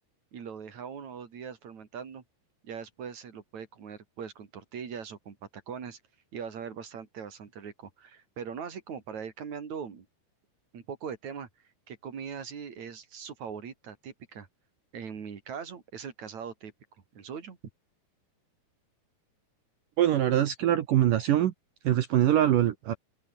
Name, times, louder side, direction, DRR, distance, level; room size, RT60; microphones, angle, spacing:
voice 1, 0.3-2.2 2.6-6.0 6.3-10.1 10.7-11.5 11.9-14.5 14.9-16.7 17.1-17.6, right 7 dB, 45° right, 4.1 m, -41 dB
voice 2, 20.0-21.5 21.8-22.9, right 12 dB, 65° right, 2.3 m, -23 dB
open air
omnidirectional pair, 4.9 m